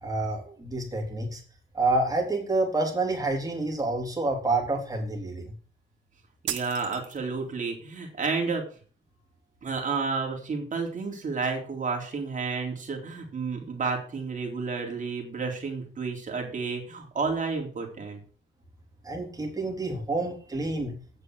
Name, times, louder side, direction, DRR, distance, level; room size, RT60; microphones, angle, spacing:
voice 1, 0.0-1.4 1.7-5.5 19.0-20.9, right 2 dB, 20° right, 0 dB, 3.9 m, -28 dB
voice 2, 6.4-8.6 9.6-18.2, right 4 dB, 40° right, 2 dB, 3.6 m, -31 dB
sound 1, 6.5-7.5, right 11 dB, 70° right, 1.2 m, -36 dB
9.1 x 6.8 x 6.3 m, 0.41 s
cardioid pair, 90°, 20 cm